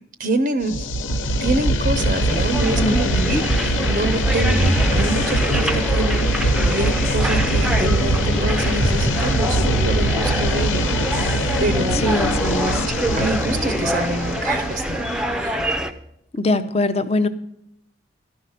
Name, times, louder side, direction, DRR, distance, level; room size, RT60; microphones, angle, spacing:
voice 1, 0.2-0.9 1.4-12.2 12.8-15.0 15.3-15.7, right 2 dB, 50° right, 9 dB, 0.6 m, -26 dB
sound 1, 0.7-15.5, equal, 90° left, 0.8 m, -22 dB
sound 2, 2.0-15.9, right 1 dB, 5° right, 0.6 m, -25 dB
voice 2, 2.8-3.4 12.0-12.9 16.3-17.3, left 2 dB, 35° left, 10 dB, 0.7 m, -22 dB
12.5 x 5.5 x 7.8 m, 0.77 s
head